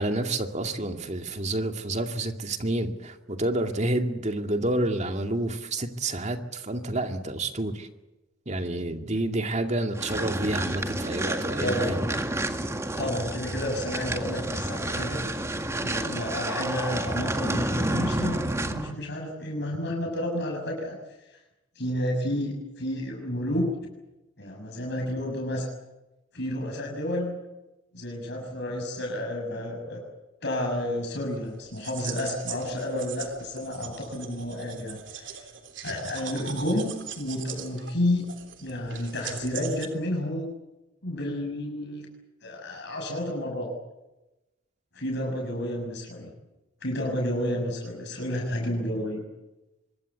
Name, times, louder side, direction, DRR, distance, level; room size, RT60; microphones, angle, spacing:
voice 1, 0.0-7.9 8.5-12.0, right 1 dB, 35° right, 6 dB, 2.3 m, -29 dB
sound 1, 10.0-18.9, right 1 dB, 15° right, 1.8 m, -30 dB
voice 2, 11.6-12.0 13.0-15.2 15.8-21.0 21.8-23.7 24.4-25.7 26.3-27.4 27.9-30.0 30.4-35.4 35.8-38.3 38.6-40.5 41.0-42.1 42.4-43.7 44.9-46.3 46.8-49.2, left 1 dB, 60° left, 1 dB, 6.6 m, -31 dB
sound 2, 31.3-39.9, right 8 dB, 70° right, 3.4 m, -41 dB
25.0 x 22.5 x 8.2 m, 0.99 s
head